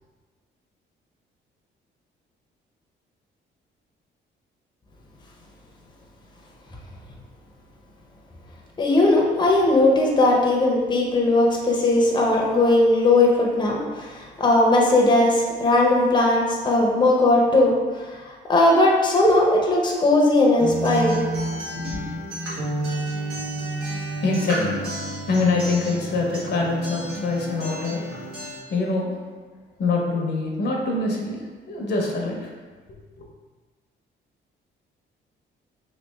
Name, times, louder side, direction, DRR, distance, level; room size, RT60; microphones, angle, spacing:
voice 1, 8.8-21.2 21.8-22.0, left 2 dB, 20° left, -1 dB, 0.6 m, -19 dB
Acoustic guitar, 20.6-28.6, right 1 dB, 85° right, 1.2 m, -30 dB
voice 2, 24.2-24.8 25.3-28.0 28.7-29.1 29.8-31.4 31.7-32.5 33.2-33.3, left 3 dB, 55° left, 0 dB, 0.7 m, -24 dB
3.1 x 2.4 x 3.3 m, 1.4 s
cardioid pair, 90°, 20 cm